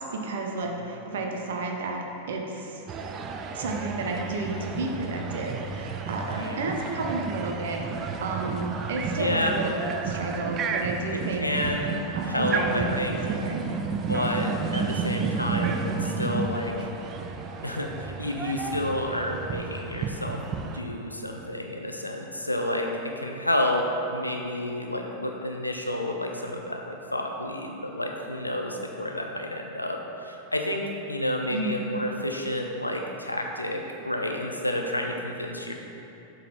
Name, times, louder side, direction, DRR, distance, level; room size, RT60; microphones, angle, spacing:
voice 1, 0.0-2.8 3.5-7.8 8.2-11.5 12.1-13.7 31.5-32.2, right 2 dB, 60° right, 1 dB, 0.8 m, -32 dB
sound 1, 2.9-20.8, right 4 dB, 30° right, 0.4 m, -31 dB
voice 2, 6.3-6.6 9.1-9.6 11.4-13.2 13.7-13.8 14.1-16.7 17.6-20.4 20.7-30.8 31.1-35.7, left 1 dB, 85° left, 2 dB, 0.5 m, -30 dB
7.4 x 4.0 x 4.1 m, 3.0 s
figure-of-eight pair, 90°, 0 cm